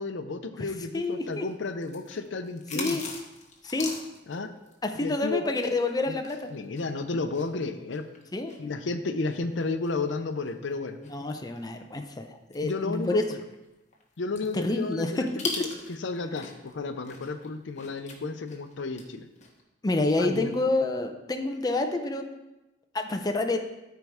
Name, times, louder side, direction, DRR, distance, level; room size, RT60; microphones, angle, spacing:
voice 1, 0.0-3.0 4.3-4.5 5.0-5.5 6.1-6.2 6.5-8.0 8.6-11.0 12.6-13.4 14.2-15.3 15.6-15.7 16.0-19.3 20.2-20.5, left 3 dB, 80° left, 8 dB, 0.6 m, -32 dB
sound 1, 0.9-5.9 6.2-11.7 12.1-12.2 12.5-16.7 17.0-19.1 19.4-19.6, left 4 dB, 40° left, 1.3 m, -41 dB
voice 2, 0.9-1.5 2.7-3.0 3.6-3.9 4.8-6.5 8.3-8.5 11.1-13.2 14.5-15.5 19.8-22.3 22.9-23.6, left 2 dB, 20° left, 4 dB, 0.6 m, -28 dB
13.5 x 4.6 x 3.6 m, 1.0 s
head